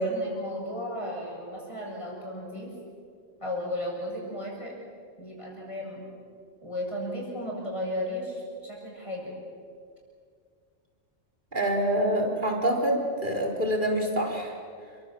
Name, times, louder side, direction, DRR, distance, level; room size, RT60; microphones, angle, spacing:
voice 1, 0.0-2.7 3.4-4.7 5.2-6.1 6.6-9.4, left 1 dB, 25° left, -2 dB, 7.6 m, -35 dB
voice 2, 11.5-14.5, right 1 dB, 40° right, 1 dB, 4.1 m, -26 dB
29.5 x 23.5 x 7.7 m, 2.2 s
omnidirectional pair, 1.3 m